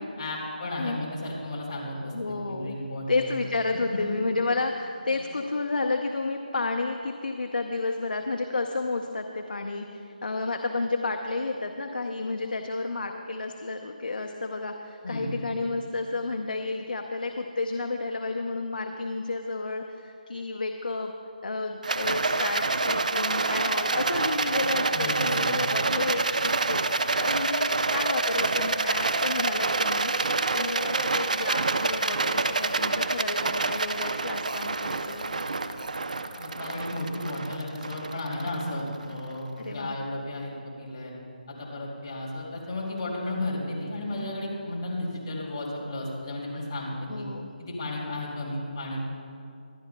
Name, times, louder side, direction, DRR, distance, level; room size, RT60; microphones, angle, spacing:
voice 1, 0.2-3.4 3.9-4.0 5.1-5.2 15.0-15.3 24.9-25.6 36.3-40.5 40.8-41.1 41.5-47.3 47.6-49.0, left 1 dB, 25° left, -6 dB, 2.6 m, -34 dB
voice 2, 2.1-2.8 3.1-21.1 21.4-30.2 30.5-35.4 39.6-40.0 47.1-47.5, left 3 dB, 70° left, 4 dB, 0.7 m, -31 dB
Rattle, 21.8-39.2, right 3 dB, 55° right, 0.6 m, -27 dB
24.0 x 10.5 x 2.2 m, 2.5 s
hypercardioid pair, 180°, 5 cm